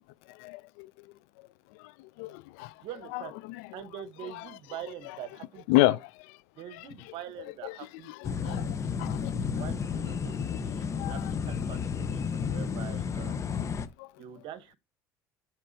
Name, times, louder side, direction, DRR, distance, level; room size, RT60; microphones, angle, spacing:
voice 1, 0.4-0.9 2.2-2.7 3.1-3.7 4.3-4.4 5.7-6.0 6.7-6.8 7.6-7.8 8.1-9.3 11.0-11.3 13.6-13.7 14.0-14.1, left 19 dB, 80° left, 0.4 m, -30 dB
voice 2, 2.8-3.3 3.7-6.0 6.6-9.1 9.5-13.6 14.2-14.8, right 10 dB, 65° right, 1.0 m, -44 dB
sound 1, 8.2-13.9, left 6 dB, 30° left, 0.7 m, -32 dB
12.5 x 4.5 x 2.6 m
supercardioid pair, 95°, 9 cm